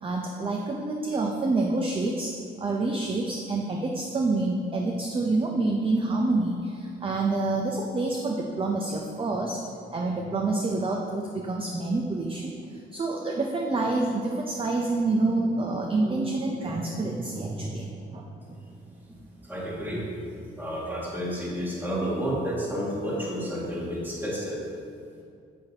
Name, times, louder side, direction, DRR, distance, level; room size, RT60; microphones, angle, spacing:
voice 1, 0.0-9.6 9.9-18.6, right 2 dB, 25° right, 1 dB, 0.6 m, -27 dB
voice 2, 19.4-20.1 20.6-24.6, equal, 10° right, -5 dB, 1.6 m, -30 dB
8.0 x 6.4 x 2.9 m, 2.4 s
cardioid pair, 90°, 20 cm